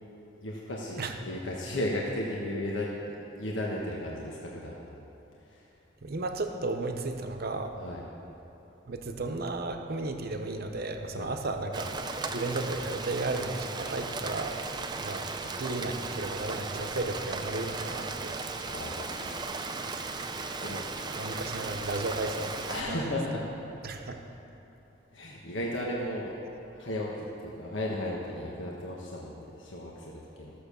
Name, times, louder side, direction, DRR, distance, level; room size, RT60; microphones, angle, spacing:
voice 1, 0.4-5.0 5.4-5.7 7.8-8.0 11.1-11.3 18.7-19.3 20.6-21.2 22.7-23.4 25.1-26.3 26.8-27.1 27.4-30.5, left 1 dB, 75° left, -3 dB, 1.3 m, -35 dB
voice 2, 6.0-7.7 8.9-12.0 12.3-14.6 14.9-18.4 21.1-22.6 22.9-23.0 23.8-24.3, right 2 dB, 55° right, 5 dB, 0.8 m, -34 dB
Rain, 11.7-22.8, right 3 dB, 20° right, 0.5 m, -36 dB
14.0 x 6.8 x 6.8 m, 3.0 s
head